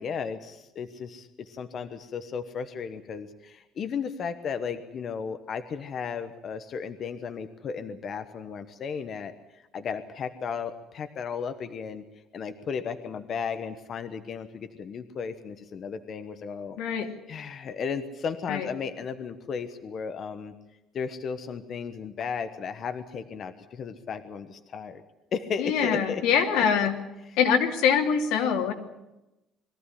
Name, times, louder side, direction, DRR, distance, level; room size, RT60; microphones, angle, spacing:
voice 1, 0.0-9.3 9.7-12.0 12.3-16.8 17.3-20.5 20.9-25.0 25.3-26.2 26.5-26.6, left 6 dB, 35° left, 9 dB, 1.1 m, -34 dB
voice 2, 16.8-17.1 18.5-18.7 25.6-26.9 27.4-28.7, left 7 dB, 80° left, 3 dB, 3.0 m, -24 dB
22.0 x 15.0 x 9.9 m, 0.98 s
cardioid pair, 165°, 0 cm